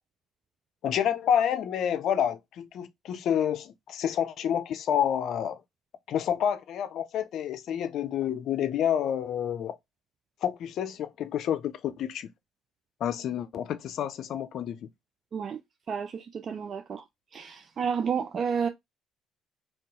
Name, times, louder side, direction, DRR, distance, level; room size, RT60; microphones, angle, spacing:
voice 1, 0.8-5.6 6.1-9.8 10.4-12.3 13.0-14.9, left 9 dB, 65° left, 0.4 m, -29 dB
voice 2, 15.9-17.0 17.3-18.7, right 6 dB, 50° right, 0.3 m, -31 dB
2.6 x 2.3 x 3.7 m
hypercardioid pair, 60°, 0 cm